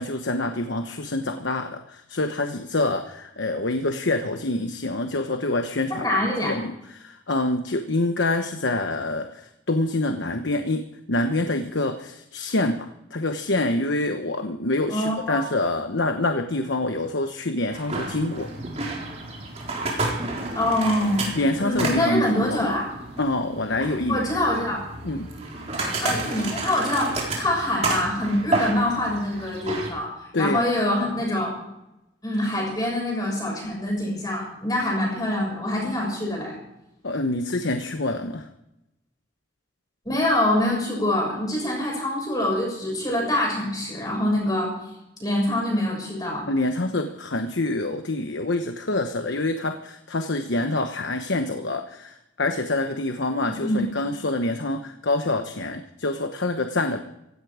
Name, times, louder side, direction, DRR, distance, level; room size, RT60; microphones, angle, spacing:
voice 1, 0.0-18.5 21.4-22.7 23.2-24.3 25.0-25.3 30.3-30.7 37.0-38.5 46.5-57.0, left 2 dB, 75° left, 7 dB, 1.1 m, -26 dB
voice 2, 6.0-6.5 14.9-15.4 20.5-21.2 21.6-22.9 24.1-24.8 26.0-31.6 32.2-36.5 40.0-44.7 45.2-46.5 53.5-53.8, left 1 dB, 20° left, -2 dB, 6.8 m, -25 dB
sound 1, 17.7-29.9, right 2 dB, 35° right, 4.2 m, -31 dB
16.5 x 16.0 x 5.0 m, 0.86 s
head